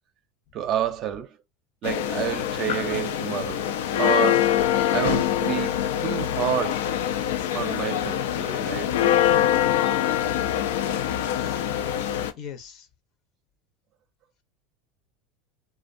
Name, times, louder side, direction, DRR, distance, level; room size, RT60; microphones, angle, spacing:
voice 1, 0.5-1.4 1.8-3.7 4.0-4.6 4.9-6.9 7.5-9.0 11.8-12.0, right 10 dB, 45° right, 0.5 m, -29 dB
sound 1, 1.8-12.3, left 11 dB, 85° left, 0.4 m, -24 dB
voice 2, 10.7-11.0 11.3-11.6 12.3-12.9, left 7 dB, 50° left, 0.7 m, -41 dB
2.5 x 2.2 x 2.5 m
supercardioid pair, 110°, 0 cm